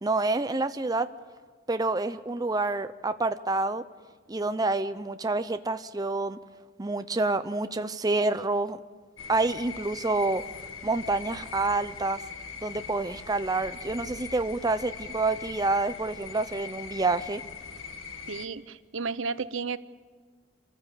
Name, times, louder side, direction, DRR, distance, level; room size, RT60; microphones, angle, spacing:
voice 1, 0.0-1.1 1.7-3.8 4.3-6.4 6.8-8.8 9.3-10.4 10.8-12.2 12.6-17.4, right 3 dB, 20° right, 9 dB, 0.6 m, -28 dB
sound 1, 9.2-18.5, left 5 dB, 80° left, 1.7 m, -41 dB
voice 2, 18.3-19.8, right 4 dB, 70° right, 14 dB, 0.8 m, -33 dB
26.5 x 14.5 x 8.4 m, 1.5 s
head